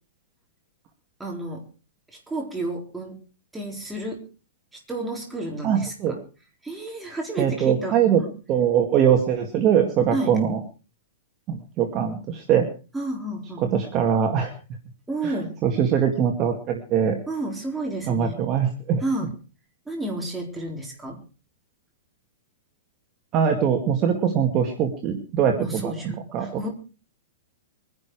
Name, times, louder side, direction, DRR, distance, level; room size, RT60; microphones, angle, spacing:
voice 1, 1.2-1.7 2.1-3.2 3.5-4.3 4.9-6.2 6.6-8.3 10.1-10.4 12.9-13.6 15.1-15.6 17.3-18.4 19.0-19.3 19.9-21.2 25.6-26.7, right 2 dB, 5° right, 0 dB, 4.1 m, -31 dB
voice 2, 5.6-6.2 7.4-8.2 8.5-10.6 11.5-12.7 13.7-14.5 15.2-15.3 15.6-17.2 18.1-19.0 23.3-25.9 26.3-26.7, right 8 dB, 25° right, 3 dB, 2.1 m, -22 dB
23.0 x 11.0 x 4.8 m, 0.36 s
hypercardioid pair, 165°, 0 cm